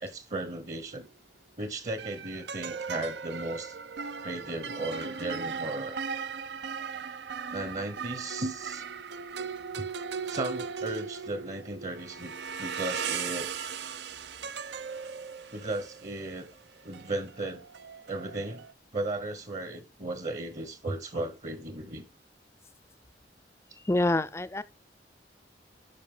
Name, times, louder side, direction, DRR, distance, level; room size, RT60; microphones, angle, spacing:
voice 1, 0.0-1.1 1.6-3.8 4.2-6.0 7.5-8.8 9.8-9.9 10.3-12.3 12.6-13.5 15.5-16.5 16.8-17.6 18.1-18.6 18.9-22.1, right 2 dB, 40° right, 1.0 m, -35 dB
sound 1, 0.8-1.1 2.0-18.7, right 6 dB, 70° right, 0.6 m, -38 dB
voice 2, 23.9-24.6, left 2 dB, 15° left, 0.4 m, -26 dB
12.0 x 5.2 x 3.7 m
head